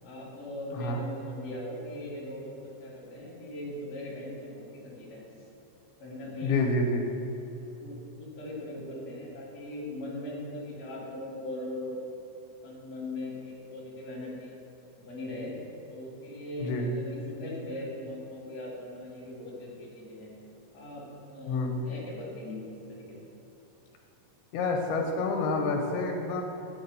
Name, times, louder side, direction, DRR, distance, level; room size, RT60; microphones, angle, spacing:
voice 1, 0.0-5.2 6.0-6.6 7.8-12.0 12.6-14.5 15.0-15.5 15.9-20.4 20.7-21.0 21.3-22.6 23.1-23.2, left 1 dB, 35° left, -5 dB, 2.0 m, -39 dB
voice 2, 6.4-7.0 16.6-16.8 21.5-21.7 24.5-26.4, left 3 dB, 85° left, 2 dB, 2.5 m, -28 dB
7.9 x 6.3 x 5.3 m, 2.9 s
omnidirectional pair, 4.5 m